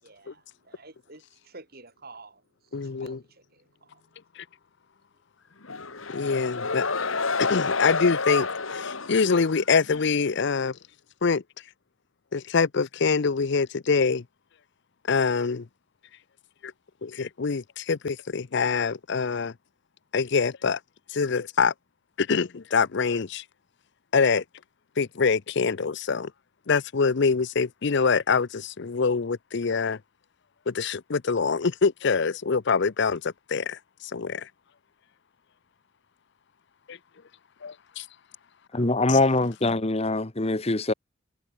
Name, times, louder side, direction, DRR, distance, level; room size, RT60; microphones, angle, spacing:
voice 1, 0.0-4.0, right 3 dB, 50° right, 7.4 m, -50 dB
voice 2, 2.7-3.2 6.1-6.9 7.4-10.8 11.2-11.4 12.3-14.2 15.1-15.7 17.0-19.5 20.1-20.8 21.1-21.7 22.2-23.4 24.1-24.4 25.0-26.3 26.7-30.0 30.7-33.8 34.1-34.5 36.9-37.0 37.6-38.0, left 5 dB, 60° left, 0.6 m, -25 dB
sound 1, 5.6-10.1, left 4 dB, 80° left, 2.3 m, -29 dB
voice 3, 38.7-40.9, left 2 dB, 30° left, 1.2 m, -23 dB
head